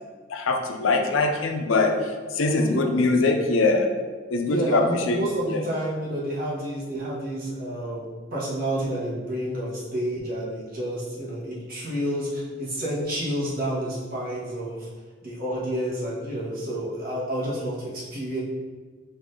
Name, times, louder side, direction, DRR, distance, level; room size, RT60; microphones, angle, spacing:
voice 1, 0.3-3.9 4.3-5.2 5.5-5.6, left 3 dB, 85° left, 4 dB, 0.5 m, -23 dB
voice 2, 2.4-2.9 4.4-14.9 15.2-18.4, right 1 dB, 50° right, -5 dB, 1.3 m, -29 dB
4.8 x 2.6 x 3.7 m, 1.4 s
head